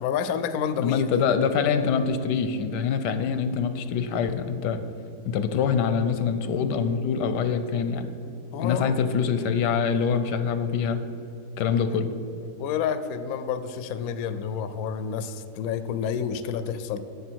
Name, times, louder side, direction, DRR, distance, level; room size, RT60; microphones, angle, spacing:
voice 1, 0.0-1.1 8.5-9.0 12.6-17.0, left 7 dB, 70° left, 11 dB, 0.9 m, -29 dB
voice 2, 0.8-4.8 5.2-8.1 8.6-11.0 11.6-12.1, left 6 dB, 85° left, 10 dB, 1.3 m, -25 dB
10.5 x 7.1 x 4.5 m, 2.9 s
omnidirectional pair, 1.8 m